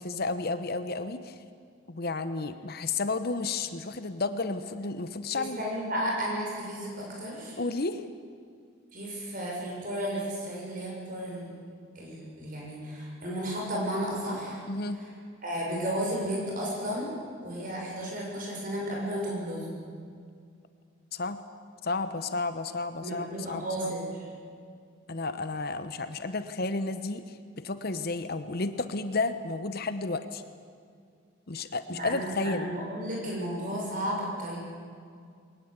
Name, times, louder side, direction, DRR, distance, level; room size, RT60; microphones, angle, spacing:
voice 1, 0.0-1.4 1.9-5.6 7.6-8.0 14.7-15.0 21.1-21.4 21.8-23.9 25.1-30.4 31.5-32.7, left 3 dB, 50° left, 10 dB, 0.9 m, -32 dB
voice 2, 5.4-7.6 8.9-11.6 12.0-14.6 15.0-15.1 15.4-17.1 17.4-19.7 23.0-24.1 31.9-34.6, equal, 40° right, -2 dB, 7.0 m, -33 dB
21.5 x 19.0 x 8.2 m, 2.2 s
head